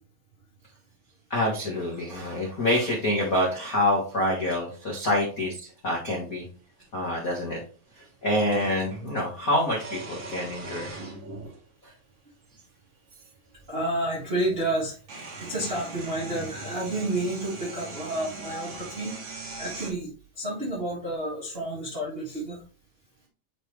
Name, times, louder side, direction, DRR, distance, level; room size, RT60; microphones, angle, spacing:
voice 1, 1.3-6.4 6.9-7.6 7.9-10.9 11.8-11.9, left 1 dB, 90° left, -3 dB, 0.7 m, -27 dB
sound 1, 6.8-6.9 8.5-9.1 9.7-11.6 12.5-12.6 14.1-14.2 14.5-19.9, right 3 dB, 50° right, 1.6 m, -39 dB
voice 2, 13.7-14.9 15.4-19.2 19.6-22.6, right 1 dB, 85° right, -6 dB, 0.5 m, -30 dB
10.0 x 3.5 x 3.2 m, 0.40 s
omnidirectional pair, 4.2 m